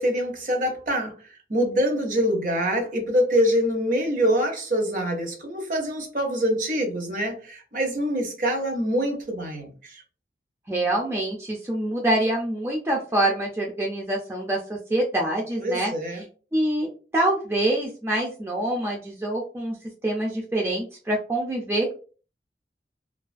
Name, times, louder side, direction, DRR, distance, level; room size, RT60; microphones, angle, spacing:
voice 1, 0.0-10.0 15.6-16.2, equal, 45° right, 0.6 m, -25 dB
voice 2, 10.7-15.9 16.5-19.8 20.0-21.9, right 1 dB, 15° right, 0.3 m, -25 dB
2.3 x 2.3 x 2.4 m
head